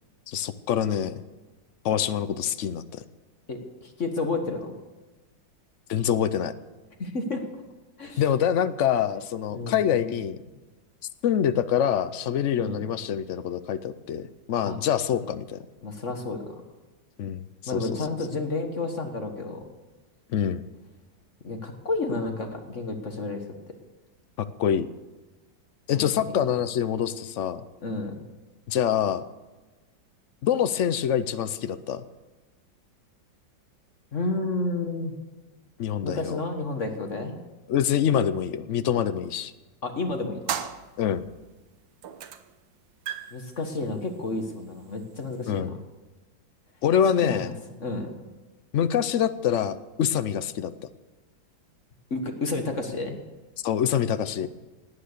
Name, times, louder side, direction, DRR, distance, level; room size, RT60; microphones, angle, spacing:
voice 1, 0.3-1.2 1.8-3.0 5.9-6.5 8.2-10.4 11.2-15.6 17.2-17.5 17.7-18.1 20.3-20.6 24.4-24.9 25.9-27.6 28.7-29.2 30.4-32.0 35.8-36.4 37.7-39.5 41.0-41.3 45.5-45.8 46.8-47.5 48.7-50.7 53.6-54.5, left 9 dB, 75° left, 13 dB, 0.6 m, -25 dB
voice 2, 3.5-4.7 7.0-7.4 8.0-8.2 9.5-10.0 12.6-12.8 14.7-14.8 15.8-16.5 17.7-19.6 21.4-23.4 25.9-26.3 27.8-28.1 34.1-35.1 36.0-37.4 39.8-40.6 43.3-45.8 47.2-47.5 47.8-48.1 52.1-53.2, left 3 dB, 40° left, 5 dB, 1.6 m, -31 dB
sound 1, 40.5-41.5 42.0-42.5 42.8-45.6, right 9 dB, 75° right, 1.6 m, -36 dB
18.0 x 9.5 x 6.7 m, 1.2 s
omnidirectional pair, 2.1 m